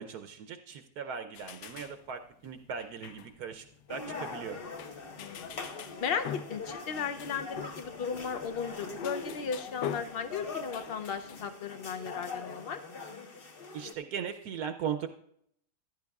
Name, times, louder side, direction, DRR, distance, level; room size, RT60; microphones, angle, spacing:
voice 1, 0.0-4.6 13.7-15.1, right 7 dB, 75° right, 7 dB, 1.1 m, -38 dB
sound 1, 1.3-11.5, left 8 dB, 90° left, 1.3 m, -45 dB
sound 2, 3.9-13.9, left 4 dB, 40° left, 1.1 m, -42 dB
voice 2, 5.2-5.7 6.0-12.8, left 6 dB, 60° left, 8 dB, 0.6 m, -36 dB
15.0 x 11.5 x 2.3 m, 0.68 s
omnidirectional pair, 1.7 m